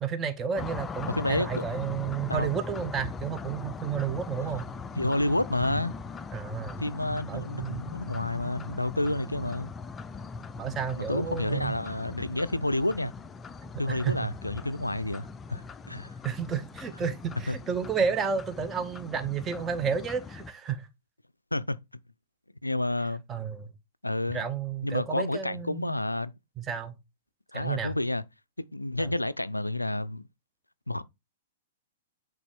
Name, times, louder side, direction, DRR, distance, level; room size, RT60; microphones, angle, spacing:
voice 1, 0.0-4.7 6.3-6.8 7.3-7.9 10.6-11.7 13.9-14.3 16.2-20.9 23.3-23.7 24.3-26.0 26.6-26.9 27.5-28.0 29.0-29.1, right 7 dB, 20° right, 0.9 m, -31 dB
sound 1, 0.6-20.5, left 4 dB, 15° left, 0.4 m, -40 dB
voice 2, 1.1-1.6 2.3-2.5 5.0-5.9 6.8-9.7 11.0-13.1 13.8-16.1 17.5-17.6 21.5-21.8 22.6-23.2 24.0-24.4 24.8-26.3 27.5-28.2 28.6-30.3 30.9-31.0, left 1 dB, 85° left, 0.3 m, -30 dB
8.4 x 3.6 x 3.5 m
figure-of-eight pair, 105°, 0 cm